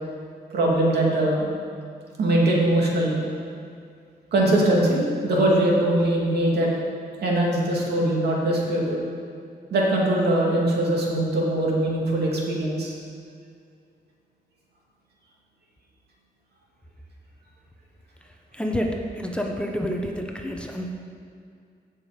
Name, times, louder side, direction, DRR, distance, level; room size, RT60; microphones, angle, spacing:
voice 1, 0.5-1.5 2.2-3.2 4.3-6.7 7.2-9.0 9.7-12.9, right 1 dB, 80° right, -3 dB, 2.7 m, -21 dB
voice 2, 18.5-20.9, equal, 5° left, 1 dB, 0.8 m, -28 dB
16.0 x 6.5 x 5.2 m, 2.3 s
wide cardioid pair, 180°, 17 cm